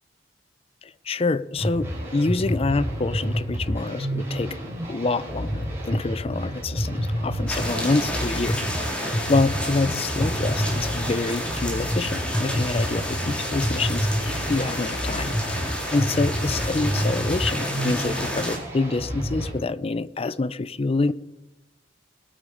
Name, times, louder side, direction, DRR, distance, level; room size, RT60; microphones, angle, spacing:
voice 1, 0.8-4.6 4.9-21.1, left 3 dB, 30° left, 16 dB, 0.5 m, -27 dB
sound 1, 1.6-19.5, equal, 15° right, 4.7 m, -29 dB
sound 2, 7.5-18.6, equal, 5° left, 2.5 m, -30 dB
19.5 x 8.5 x 5.4 m, 1.1 s
head